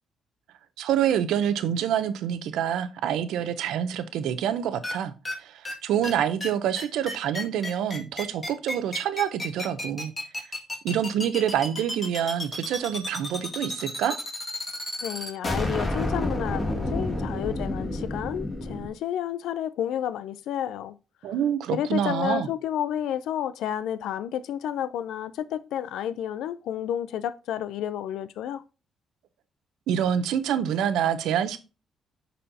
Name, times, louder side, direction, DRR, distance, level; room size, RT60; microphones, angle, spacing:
voice 1, 0.8-5.1 5.4-10.1 10.8-14.2 21.2-22.5 29.9-31.6, right 9 dB, 85° right, 0.7 m, -26 dB
sound 1, 4.8-4.9 5.2-5.3 5.6-5.7 6.0-6.1 6.4-6.5 6.8-18.9, left 1 dB, 25° left, 2.0 m, -30 dB
voice 2, 15.0-21.0 21.7-28.6, left 10 dB, 85° left, 0.5 m, -31 dB
11.0 x 4.3 x 2.8 m
cardioid pair, 90°, 0 cm